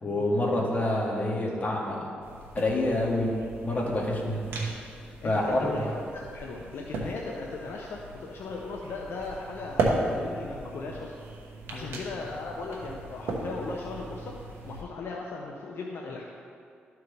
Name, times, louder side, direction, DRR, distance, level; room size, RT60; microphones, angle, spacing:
voice 1, 0.0-2.0 2.5-4.4 5.2-5.7 11.7-12.0, left 1 dB, 40° left, -3 dB, 1.9 m, -27 dB
sound 1, 2.2-14.8, right 2 dB, 80° right, 1.1 m, -36 dB
voice 2, 5.2-11.1 11.7-16.2, left 3 dB, 70° left, -1 dB, 0.7 m, -38 dB
12.5 x 4.6 x 3.3 m, 2.4 s
cardioid pair, 75°, 4 cm